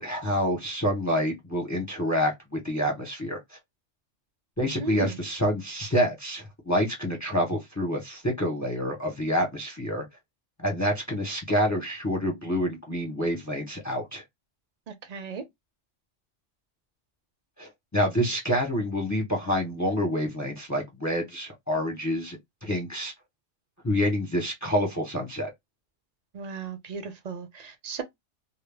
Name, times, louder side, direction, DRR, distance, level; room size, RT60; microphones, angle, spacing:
voice 1, 0.0-3.6 4.6-10.0 10.6-14.2 17.6-23.1 23.8-25.5, equal, 25° left, 0.4 m, -27 dB
voice 2, 4.8-5.2 14.9-15.4 26.3-28.0, right 5 dB, 50° right, 0.5 m, -36 dB
2.2 x 2.0 x 3.2 m
omnidirectional pair, 1.3 m